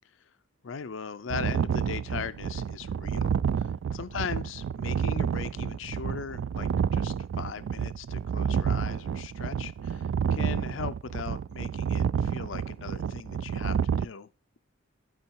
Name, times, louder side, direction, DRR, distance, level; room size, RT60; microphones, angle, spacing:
voice 1, 0.6-3.3 3.6-14.3, left 6 dB, 90° left, 0.5 m, -39 dB
sound 1, 1.3-14.0, right 7 dB, 85° right, 0.3 m, -29 dB
12.5 x 4.6 x 4.5 m
head